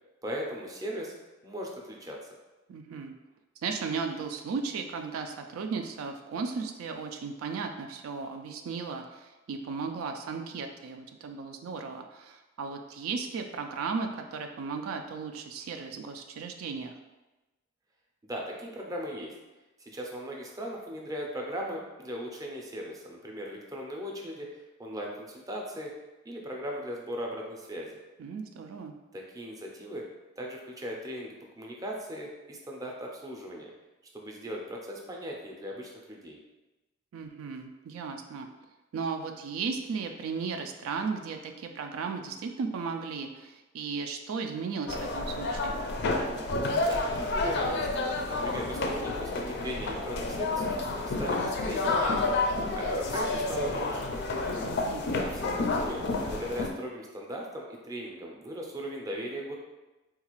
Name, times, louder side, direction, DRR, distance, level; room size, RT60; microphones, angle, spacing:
voice 1, 0.2-1.1 1.4-2.2 18.2-19.3 19.8-25.9 26.2-28.0 29.1-30.1 30.4-33.7 34.1-36.4 46.9-52.4 52.8-54.1 55.2-56.0 56.3-59.6, equal, 20° right, 0 dB, 0.5 m, -38 dB
voice 2, 2.7-3.1 3.6-16.9 28.2-28.9 37.1-38.5 38.9-45.8 54.6-55.1, right 5 dB, 90° right, 5 dB, 0.3 m, -35 dB
sound 1, 44.9-56.7, left 2 dB, 55° left, 0.4 m, -30 dB
3.8 x 2.4 x 3.0 m, 1.1 s
head